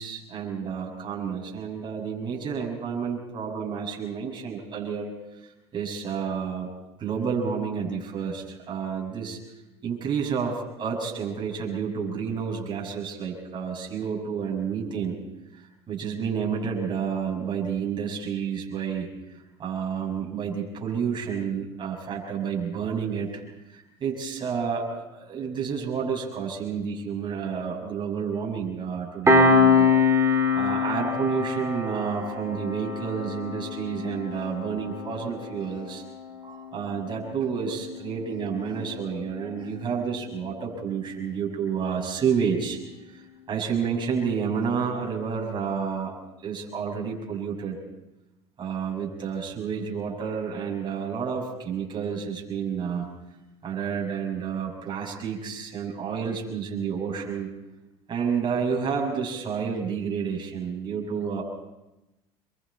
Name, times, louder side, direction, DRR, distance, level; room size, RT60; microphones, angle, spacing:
voice 1, 0.0-5.1 5.7-6.7 7.0-9.4 9.8-15.2 15.6-19.1 19.6-23.4 23.7-29.9 30.5-36.0 36.4-42.8 43.1-46.1 46.4-47.8 48.6-53.1 53.6-57.5 58.1-61.4, right 6 dB, 35° right, -1 dB, 6.5 m, -30 dB
Piano, 29.3-40.3, left 3 dB, 20° right, 3.8 m, -26 dB
26.0 x 23.5 x 4.3 m, 0.98 s
supercardioid pair, 95°, 14 cm